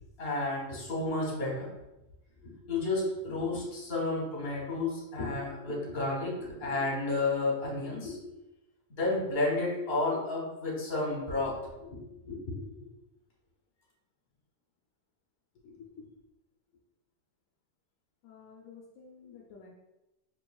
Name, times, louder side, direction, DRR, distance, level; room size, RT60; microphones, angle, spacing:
voice 1, 0.2-1.7 2.4-8.2 8.9-12.0 12.2-12.7, left 2 dB, 50° left, -3 dB, 1.3 m, -32 dB
voice 2, 15.6-16.1 18.2-19.7, left 5 dB, 85° left, -1 dB, 1.0 m, -51 dB
4.6 x 3.1 x 2.2 m, 0.98 s
omnidirectional pair, 1.3 m